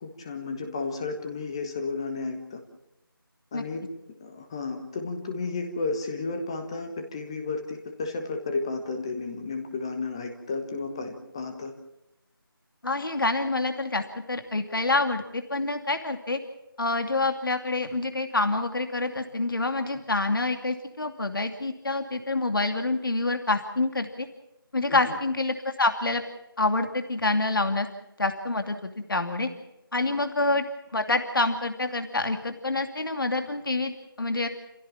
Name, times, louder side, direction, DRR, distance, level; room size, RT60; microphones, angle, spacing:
voice 1, 0.0-2.6 3.5-3.8 4.2-11.7 24.9-25.2, left 3 dB, 15° left, 5 dB, 1.4 m, -33 dB
voice 2, 12.8-16.4 16.8-24.3 24.7-26.2 26.6-27.9 28.2-29.5 29.9-30.6 30.9-34.5, left 2 dB, 65° left, 6 dB, 2.6 m, -27 dB
28.5 x 16.5 x 7.3 m, 0.91 s
figure-of-eight pair, 170°, 12 cm